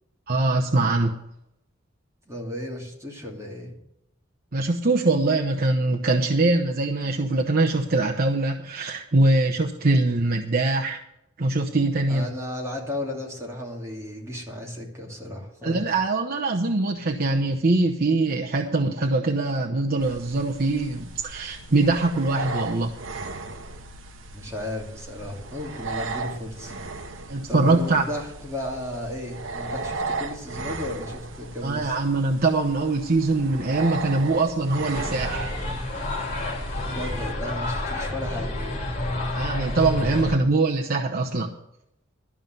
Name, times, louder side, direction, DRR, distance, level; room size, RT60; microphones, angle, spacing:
voice 1, 0.3-1.2 4.5-11.0 11.4-12.3 15.6-22.9 27.3-28.0 31.6-35.5 39.3-41.5, right 2 dB, 50° right, 2 dB, 0.8 m, -23 dB
voice 2, 2.3-3.8 12.1-15.9 24.3-26.8 27.5-32.0 36.9-38.8 40.1-40.2, left 1 dB, 15° right, -2 dB, 2.8 m, -34 dB
sound 1, 20.0-37.3, right 3 dB, 75° right, 1.0 m, -36 dB
sound 2, 34.9-40.4, left 1 dB, 40° left, 3.0 m, -29 dB
13.0 x 5.4 x 9.0 m, 0.81 s
head